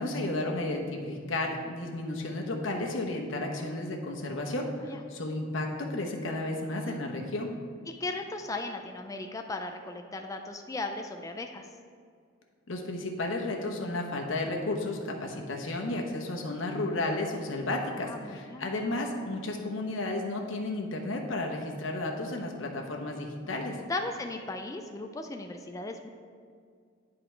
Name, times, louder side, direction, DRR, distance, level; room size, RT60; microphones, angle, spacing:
voice 1, 0.0-7.5 12.7-23.8, left 2 dB, 90° left, 1 dB, 1.0 m, -33 dB
voice 2, 7.9-11.7 18.0-18.7 23.9-26.1, left 2 dB, 15° left, 4 dB, 0.3 m, -37 dB
10.5 x 3.8 x 4.5 m, 2.1 s
head